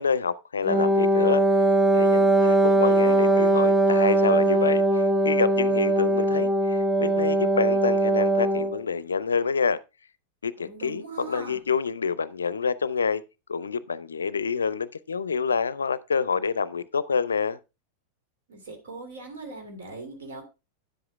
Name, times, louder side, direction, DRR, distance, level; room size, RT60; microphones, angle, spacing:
voice 1, 0.0-1.4 1.9-9.8 10.4-13.2 13.5-17.6, left 5 dB, 70° left, 0.5 m, -27 dB
Wind instrument woodwind instrument, 0.6-8.8, right 1 dB, 5° right, 0.6 m, -21 dB
voice 2, 2.7-3.6 10.6-11.6 18.5-20.4, right 3 dB, 65° right, 2.9 m, -40 dB
10.0 x 7.7 x 3.4 m
figure-of-eight pair, 90°, 0 cm